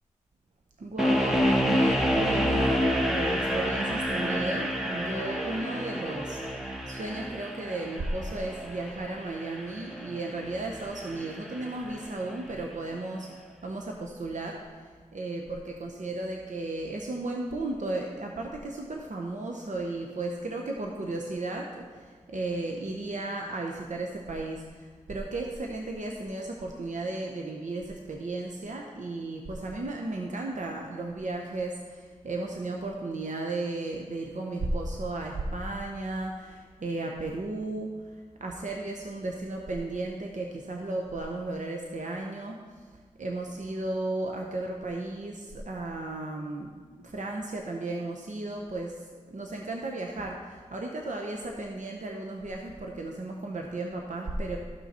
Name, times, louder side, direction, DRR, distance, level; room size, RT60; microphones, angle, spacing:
voice 1, 0.8-46.7 47.0-54.6, right 2 dB, 70° right, 1 dB, 0.8 m, -34 dB
sound 1, 1.0-12.0, equal, 5° right, 1.3 m, -29 dB
13.5 x 5.9 x 4.3 m, 1.5 s
cardioid pair, 45°, 13 cm